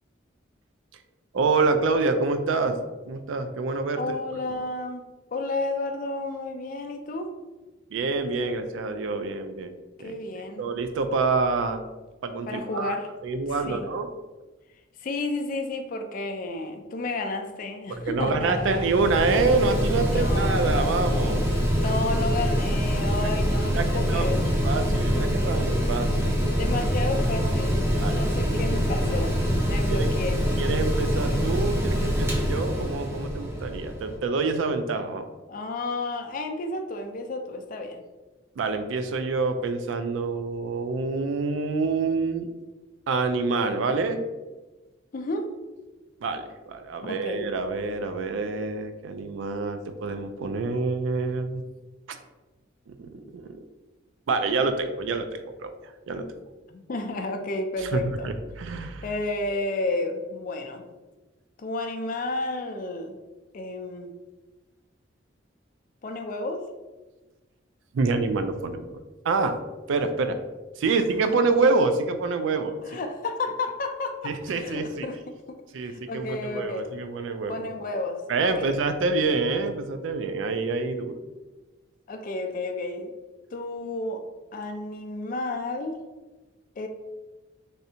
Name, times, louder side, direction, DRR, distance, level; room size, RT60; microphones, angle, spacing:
voice 1, 1.3-2.8 3.1-4.0 4.5-4.6 7.9-9.7 10.0-10.2 10.6-11.8 12.2-12.9 13.2-14.1 17.9-21.4 23.6-26.3 28.0-28.2 29.9-30.1 30.6-35.2 38.6-42.5 43.1-44.2 46.2-51.6 52.1-52.2 53.0-53.6 54.3-55.7 56.1-56.3 57.9-59.0 67.9-69.0 69.2-69.6 69.9-70.4 70.8-72.8 74.2-75.1 75.7-77.6 78.3-81.2, right 3 dB, 80° right, 8 dB, 0.3 m, -26 dB
voice 2, 4.0-5.0 5.3-7.4 10.0-10.7 12.4-13.1 13.7-13.9 15.0-18.8 20.1-20.9 21.2-24.4 26.6-29.4 29.6-30.4 35.5-38.0 45.1-45.5 47.0-47.5 56.7-58.3 59.0-60.8 61.6-63.2 63.5-64.1 66.0-66.6 70.9-71.0 72.8-75.3 75.8-76.9 77.5-78.7 82.1-83.1 83.5-84.2 84.5-86.0 86.8-86.9, left 2 dB, 45° left, 5 dB, 0.4 m, -32 dB
Mechanical fan, 17.9-34.2, equal, 15° right, 0.6 m, -25 dB
3.2 x 2.7 x 2.7 m, 1.2 s
head